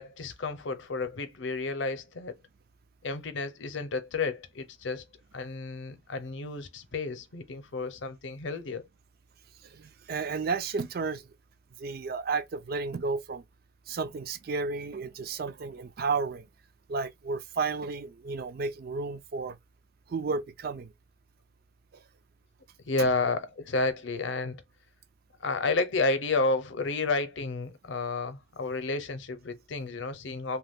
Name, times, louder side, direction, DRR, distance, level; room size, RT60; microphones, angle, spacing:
voice 1, 0.0-2.3 3.0-5.0 5.3-8.9 22.9-24.6 25.4-30.6, left 3 dB, 75° left, 0.7 m, -31 dB
voice 2, 9.6-11.3 11.8-13.4 13.9-16.5 16.9-19.6 20.1-20.9 21.9-22.0 23.0-23.1, right 4 dB, 50° right, 0.4 m, -32 dB
2.9 x 2.2 x 3.6 m
head